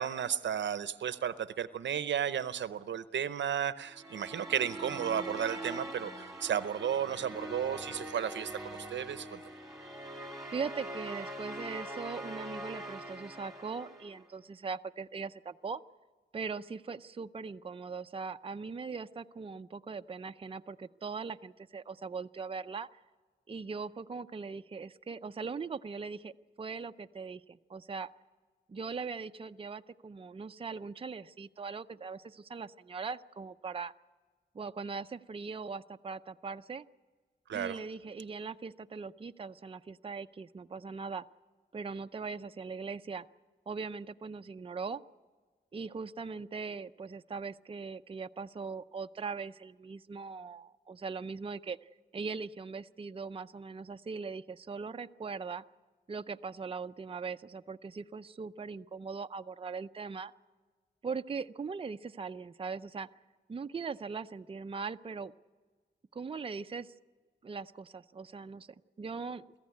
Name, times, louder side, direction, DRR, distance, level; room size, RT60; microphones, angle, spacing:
voice 1, 0.0-8.5 8.9-9.4 37.5-37.8, right 9 dB, 90° right, 13 dB, 0.7 m, -33 dB
sound 1, 3.9-14.3, right 1 dB, 5° right, 2.5 m, -43 dB
voice 2, 10.5-15.8 16.3-22.9 23.5-26.3 26.6-28.1 28.7-33.9 34.5-36.8 37.5-41.2 41.7-43.3 43.7-45.0 45.7-55.6 56.1-60.3 61.0-63.1 63.5-65.3 66.1-66.9 67.4-68.7 69.0-69.4, right 5 dB, 30° right, 8 dB, 0.5 m, -40 dB
22.5 x 14.5 x 9.6 m, 1.5 s
wide cardioid pair, 95°, 18 cm